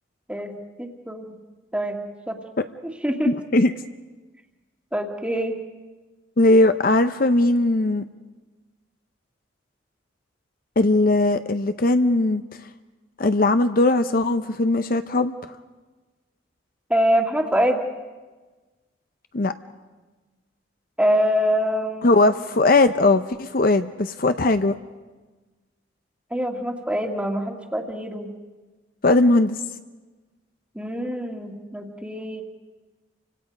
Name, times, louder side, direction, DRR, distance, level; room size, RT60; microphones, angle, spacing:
voice 1, 0.8-1.4 1.7-2.4 2.8-3.3 4.9-5.6 16.9-17.8 21.0-22.1 26.3-28.3 30.7-32.4, equal, 5° right, 3 dB, 1.8 m, -24 dB
voice 2, 3.2-3.7 6.4-8.0 10.8-12.4 13.2-15.3 19.3-19.5 22.0-24.7 29.0-29.6, left 2 dB, 50° left, 10 dB, 0.6 m, -19 dB
29.5 x 25.5 x 5.2 m, 1.3 s
head